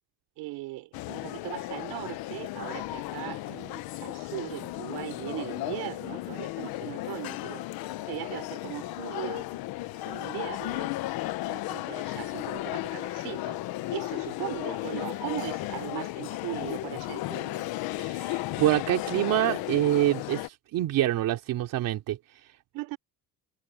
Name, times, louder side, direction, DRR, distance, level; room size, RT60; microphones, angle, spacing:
voice 1, 0.4-7.7 8.1-9.5 9.9-10.9 11.5-13.6 13.9-17.7 22.7-23.0, right 20 dB, 85° right, 5.3 m, -39 dB
sound 1, 0.9-20.5, left 17 dB, 75° left, 1.1 m, -35 dB
voice 2, 18.0-22.2, right 14 dB, 60° right, 3.1 m, -26 dB
cardioid pair, 155°, 37 cm